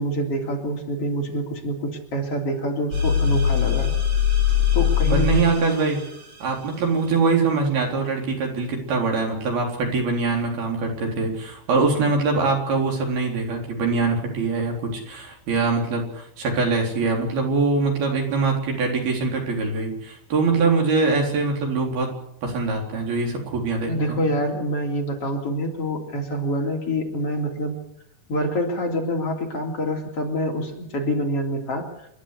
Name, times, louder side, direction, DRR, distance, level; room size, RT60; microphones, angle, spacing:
voice 1, 0.0-3.9 4.7-5.4 23.8-27.8 28.3-32.1, equal, 35° left, 0 dB, 3.9 m, -26 dB
sound 1, 2.9-6.5, left 8 dB, 35° right, 4.2 m, -22 dB
voice 2, 5.1-6.0 6.4-22.1 22.4-24.2, right 4 dB, 65° right, 1 dB, 5.8 m, -23 dB
29.0 x 11.5 x 8.3 m, 0.78 s
omnidirectional pair, 4.7 m